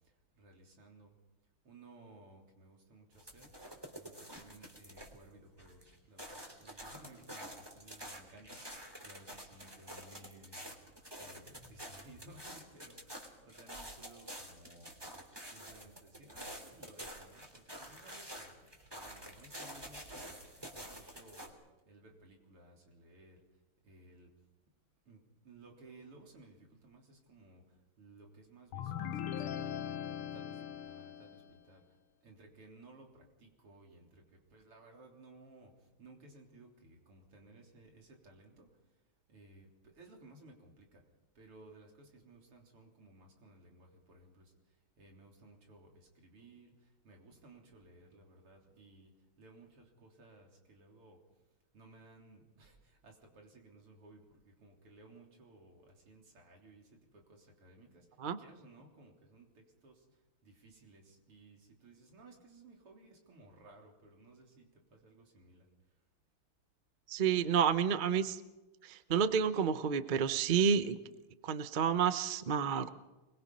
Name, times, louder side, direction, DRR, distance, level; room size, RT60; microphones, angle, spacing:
voice 1, 0.4-1.1 1.7-3.5 3.9-5.8 6.1-8.6 9.0-10.7 11.2-14.9 15.5-18.5 18.9-20.3 20.7-21.5 21.9-23.4 23.8-24.3 25.1-25.2 25.5-26.6 26.8-27.6 28.0-30.0 30.3-31.8 32.2-33.1 33.4-34.1 34.5-35.7 36.0-38.7 39.3-39.7 39.9-41.0 41.4-44.4 45.0-45.9 46.2-46.7 47.0-49.1 49.4-51.2 51.7-52.7 53.0-54.2 54.6-56.8 57.1-57.2 57.6-58.0 58.4-59.5 59.8-59.9 60.5-64.7 65.0-65.7, right 2 dB, 85° right, 1 dB, 4.4 m, -58 dB
sound 1, 3.1-5.3 5.6-21.5, equal, 10° right, 3.0 m, -49 dB
sound 2, 28.7-31.5, left 9 dB, 80° left, 1.8 m, -40 dB
voice 2, 67.1-68.4 68.9-71.0 71.4-72.9, right 7 dB, 70° right, 11 dB, 0.4 m, -30 dB
24.0 x 21.5 x 5.4 m, 1.1 s
omnidirectional pair, 2.4 m